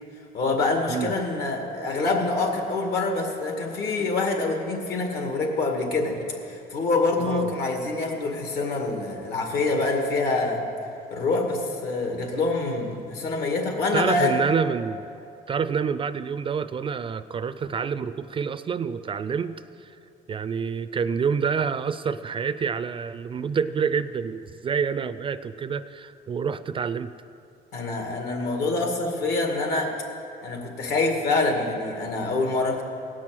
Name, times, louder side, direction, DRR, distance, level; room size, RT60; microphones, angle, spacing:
voice 1, 0.3-6.2 6.5-10.6 11.1-14.4 27.7-29.9 30.4-32.8, left 3 dB, 70° left, 2 dB, 2.2 m, -26 dB
voice 2, 7.2-7.5 13.9-15.1 15.5-19.9 20.3-27.1, right 6 dB, 30° right, 13 dB, 0.4 m, -27 dB
17.5 x 6.2 x 7.6 m, 2.7 s
cardioid pair, 110°, 17 cm